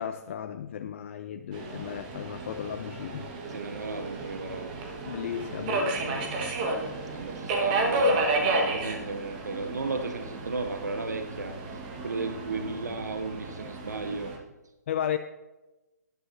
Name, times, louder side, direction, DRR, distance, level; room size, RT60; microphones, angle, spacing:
voice 1, 0.0-3.3 5.1-6.4 14.9-15.2, left 9 dB, 45° left, 9 dB, 0.4 m, -34 dB
Subway metro underground, 1.5-14.4, right 2 dB, 30° right, 1.5 m, -31 dB
voice 2, 3.4-4.7 7.1-14.3, right 3 dB, 75° right, 7 dB, 0.8 m, -35 dB
14.0 x 10.5 x 2.7 m, 1.1 s
figure-of-eight pair, 135°, 9 cm